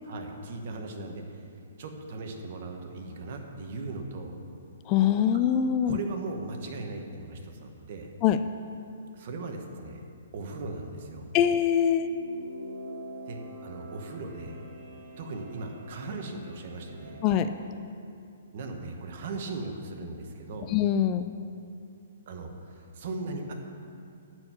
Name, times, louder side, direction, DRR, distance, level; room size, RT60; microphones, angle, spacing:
voice 1, 0.0-1.4 1.8-4.4 5.8-8.1 9.1-10.0 10.3-11.3 13.2-14.6 15.2-17.2 18.5-20.7 22.3-23.5, right 3 dB, 45° right, 3 dB, 1.3 m, -38 dB
voice 2, 4.9-6.0 8.2-8.4 11.3-12.1 17.2-17.5 20.7-21.3, left 9 dB, 25° left, 10 dB, 0.3 m, -23 dB
sound 1, 11.8-17.5, equal, 15° right, 2.0 m, -45 dB
12.0 x 4.6 x 8.2 m, 2.5 s
hypercardioid pair, 160°, 0 cm